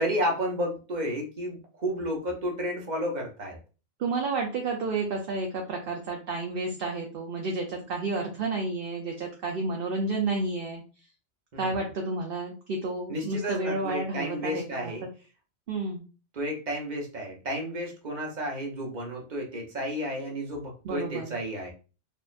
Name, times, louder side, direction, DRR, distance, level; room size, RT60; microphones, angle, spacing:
voice 1, 0.0-3.6 11.5-11.8 13.1-15.0 16.3-21.7, equal, 40° right, 0 dB, 1.1 m, -32 dB
voice 2, 4.0-10.8 11.6-14.9 15.7-16.0 20.8-21.3, right 3 dB, 55° right, 1 dB, 0.8 m, -31 dB
4.2 x 2.9 x 2.5 m, 0.33 s
omnidirectional pair, 1.2 m